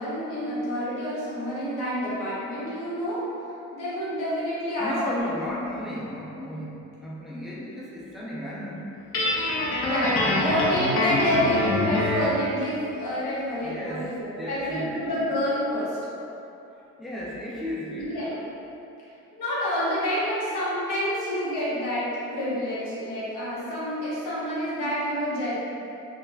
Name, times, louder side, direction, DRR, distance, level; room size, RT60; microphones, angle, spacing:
voice 1, 0.0-3.2 3.7-5.6 9.8-16.0 18.0-18.3 19.4-25.6, left 1 dB, 90° left, -10 dB, 1.1 m, -28 dB
voice 2, 4.8-9.4 10.2-10.6 11.0-11.2 13.6-14.1 14.4-15.3 16.7-18.5, equal, ahead, -6 dB, 0.5 m, -35 dB
Guitar, 9.1-12.4, left 1 dB, 45° left, 0.6 m, -24 dB
3.7 x 2.4 x 2.2 m, 2.8 s
cardioid pair, 90°, 30 cm